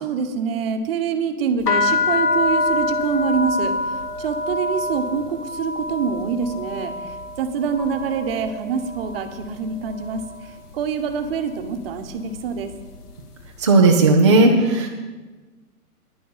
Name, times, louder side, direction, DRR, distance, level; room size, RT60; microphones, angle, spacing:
voice 1, 0.0-12.7, right 6 dB, 40° right, 8 dB, 1.1 m, -26 dB
sound 1, 1.6-9.5 9.8-10.5 11.1-11.4 11.6-13.1, left 2 dB, 80° left, 1.6 m, -26 dB
voice 2, 13.6-14.9, right 3 dB, 20° right, -1 dB, 0.4 m, -14 dB
10.0 x 9.3 x 5.5 m, 1.3 s
hypercardioid pair, 140°, 46 cm